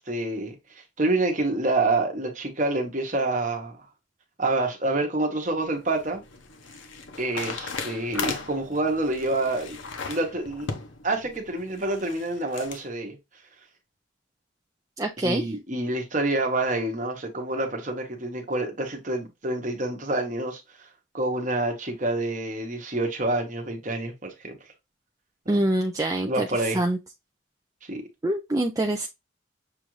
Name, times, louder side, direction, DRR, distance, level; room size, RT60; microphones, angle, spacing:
voice 1, 0.0-3.8 4.4-6.2 7.2-9.8 10.1-10.7 11.0-13.2 15.2-20.9 21.1-24.6 25.5-25.6 26.3-26.8 27.9-28.1, right 2 dB, 40° right, 1.1 m, -27 dB
sound 1, 5.5-12.8, left 4 dB, 65° left, 0.8 m, -37 dB
voice 2, 15.0-15.5 25.5-27.0 28.2-29.1, right 1 dB, 15° right, 0.4 m, -25 dB
6.7 x 2.5 x 3.1 m
head